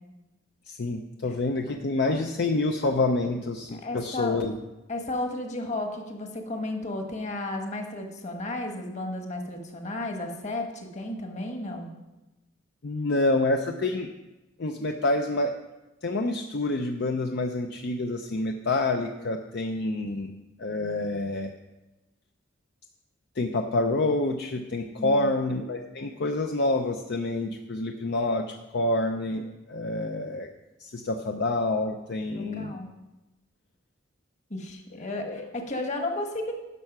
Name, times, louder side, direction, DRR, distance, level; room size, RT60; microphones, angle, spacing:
voice 1, 0.7-4.5 12.8-14.1 14.6-15.6 16.0-20.3 20.6-21.5 23.4-30.5 30.8-32.8 35.2-35.5, left 2 dB, 60° left, 4 dB, 0.5 m, -27 dB
voice 2, 3.7-4.4 4.9-11.9 24.9-25.3 32.3-32.9 34.5-36.5, left 2 dB, 35° left, 4 dB, 1.3 m, -33 dB
11.0 x 5.7 x 6.0 m, 1.0 s
head